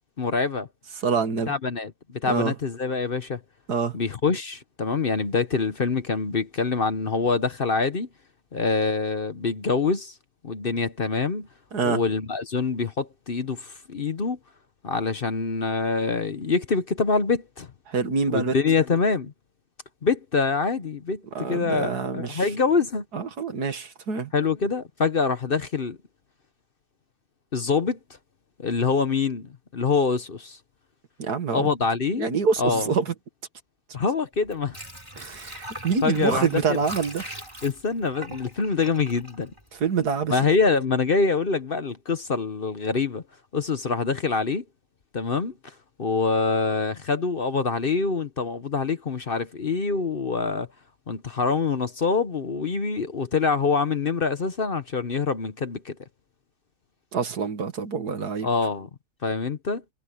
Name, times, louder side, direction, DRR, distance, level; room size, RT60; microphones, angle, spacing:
voice 1, 0.2-0.7 1.5-3.4 3.9-8.1 8.5-10.1 10.4-11.5 11.8-14.4 14.8-17.7 18.3-19.3 20.0-23.0 24.3-26.0 27.5-28.0 28.6-30.6 31.5-32.3 32.6-32.9 33.9-34.8 36.0-36.8 37.6-39.5 40.3-43.2 43.5-44.6 45.1-45.5 46.0-50.7 51.1-55.9 58.4-58.9 59.2-59.8, left 4 dB, 40° left, 1.0 m, -25 dB
voice 2, 1.0-1.5 2.2-2.6 3.7-4.0 11.7-12.0 17.9-18.6 21.3-22.5 23.1-24.3 31.2-31.7 32.1-33.1 35.2-37.3 39.7-40.4 57.1-58.5, right 5 dB, 90° right, 2.4 m, -26 dB
Water / Sink (filling or washing), 34.3-40.2 40.6-40.7, right 1 dB, 20° right, 7.0 m, -41 dB
omnidirectional pair, 1.6 m